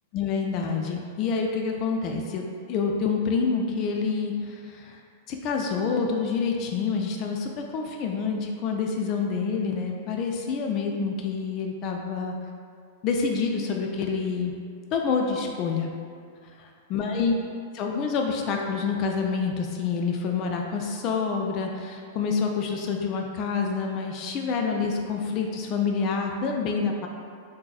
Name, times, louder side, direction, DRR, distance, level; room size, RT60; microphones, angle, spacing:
voice 1, 0.1-5.0 5.3-12.4 13.0-14.5 14.9-15.9 16.9-17.3 17.7-27.1, left 5 dB, 40° left, 1 dB, 0.3 m, -27 dB
3.6 x 2.7 x 2.4 m, 2.3 s
hypercardioid pair, 100°, 0 cm